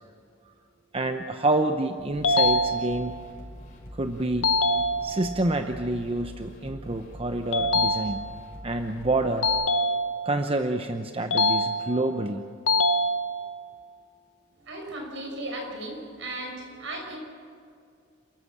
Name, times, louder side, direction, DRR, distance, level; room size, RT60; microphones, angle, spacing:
voice 1, 0.9-3.2 3.9-4.5 5.0-8.2 8.6-9.5 10.2-12.4, right 2 dB, 30° right, 6 dB, 0.8 m, -28 dB
sound 1, 2.0-9.5, equal, 40° left, 5.9 m, -44 dB
sound 2, 2.2-3.3 4.4-5.4 7.5-8.5 9.4-10.5 11.3-12.2 12.7-13.7, left 1 dB, 80° left, 1.0 m, -25 dB
voice 2, 14.6-17.2, right 1 dB, 70° right, 1 dB, 6.0 m, -36 dB
29.0 x 14.5 x 7.4 m, 2.3 s
head